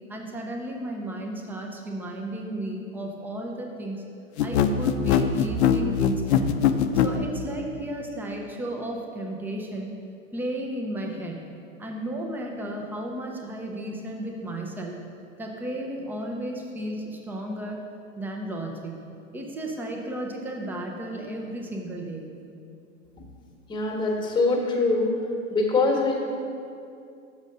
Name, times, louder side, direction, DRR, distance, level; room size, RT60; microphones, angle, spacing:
voice 1, 0.1-4.0 4.4-6.5 7.0-9.9 10.3-11.5 11.8-15.0 15.4-17.8 18.2-19.0 19.3-22.2, right 1 dB, 5° right, 1 dB, 0.5 m, -34 dB
sound 1, 4.4-7.2, left 9 dB, 55° left, 0.6 m, -21 dB
voice 2, 23.7-25.2 25.5-26.2, left 3 dB, 10° left, 0 dB, 1.2 m, -23 dB
6.4 x 5.1 x 6.6 m, 2.5 s
hypercardioid pair, 125°, 41 cm